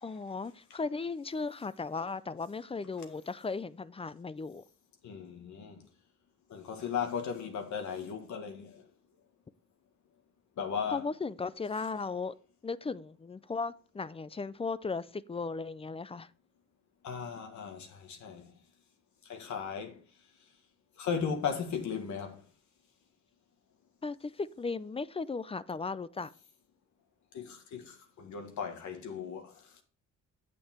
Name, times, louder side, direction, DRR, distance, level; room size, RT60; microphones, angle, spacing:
voice 1, 0.0-4.6 10.9-12.3 12.6-16.3 24.0-26.3, left 4 dB, 20° left, 0.4 m, -36 dB
voice 2, 5.0-5.9 6.5-8.9 10.6-11.1 17.0-18.6 19.2-20.0 21.0-22.4 27.3-29.8, left 6 dB, 70° left, 1.8 m, -37 dB
8.5 x 6.8 x 4.4 m
cardioid pair, 90°, 30 cm